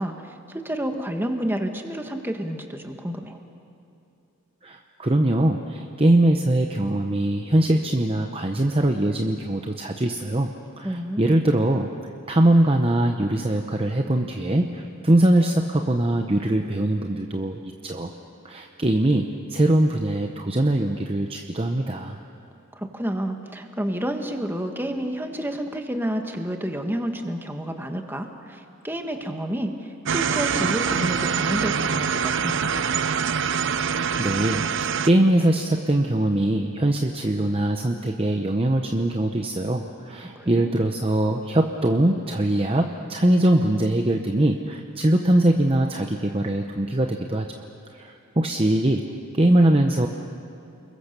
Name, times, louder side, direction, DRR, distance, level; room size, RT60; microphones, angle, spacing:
voice 1, 0.0-3.4 10.8-11.5 22.7-32.7 40.2-40.8, equal, 10° right, 4 dB, 1.5 m, -30 dB
voice 2, 4.6-10.5 10.8-11.9 12.3-18.1 18.4-22.2 34.2-34.6 35.0-47.5 47.9-49.0 49.3-50.1, right 1 dB, 25° right, 4 dB, 0.9 m, -22 dB
sound 1, 30.0-35.1, right 6 dB, 55° right, 0.7 m, -24 dB
29.5 x 22.0 x 6.8 m, 2.8 s
head